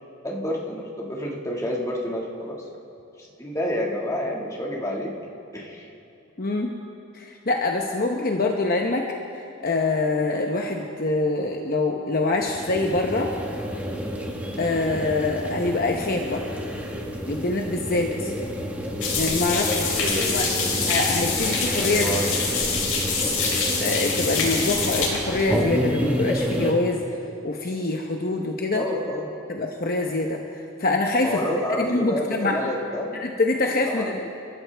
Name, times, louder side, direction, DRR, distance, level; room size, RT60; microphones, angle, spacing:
voice 1, 0.2-2.6 3.4-5.2 5.5-5.9 18.2-18.4 19.5-21.0 21.6-22.3 28.7-29.4 31.2-33.1 33.8-34.1, left 1 dB, 15° left, -2 dB, 1.8 m, -29 dB
voice 2, 6.4-6.7 7.1-9.1 9.6-13.3 14.6-16.4 17.3-18.3 19.1-19.8 20.3-20.4 20.9-22.3 23.8-27.0 27.4-28.8 29.5-31.4 31.8-32.6 33.1-34.3, left 2 dB, 40° left, 2 dB, 0.9 m, -25 dB
sound 1, 12.3-26.7, equal, 5° right, 1.3 m, -30 dB
sound 2, 19.0-25.1, left 4 dB, 75° left, 4.2 m, -25 dB
29.5 x 13.5 x 3.4 m, 2.7 s
head